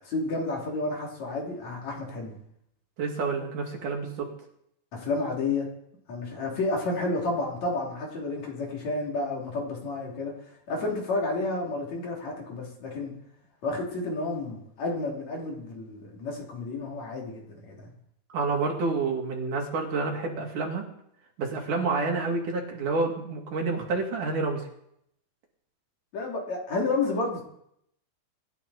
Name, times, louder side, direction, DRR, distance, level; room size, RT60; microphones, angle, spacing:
voice 1, 0.0-2.4 4.9-5.7 6.1-10.4 10.7-13.1 13.6-17.9 26.1-27.4, left 3 dB, 60° left, -1 dB, 4.2 m, -31 dB
voice 2, 3.0-4.3 18.3-20.8 21.4-24.6, right 3 dB, 80° right, 0 dB, 4.1 m, -28 dB
25.0 x 12.0 x 4.2 m, 0.74 s
omnidirectional pair, 3.6 m